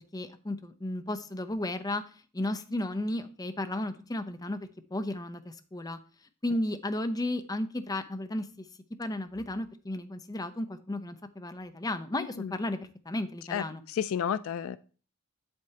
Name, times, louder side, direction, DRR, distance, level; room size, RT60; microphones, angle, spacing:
voice 1, 0.1-2.0 2.3-6.0 6.4-8.7 9.0-12.8 13.1-13.8, left 1 dB, 15° left, 0.6 m, -34 dB
voice 2, 13.5-14.9, left 8 dB, 65° left, 0.3 m, -32 dB
7.8 x 7.5 x 2.8 m
head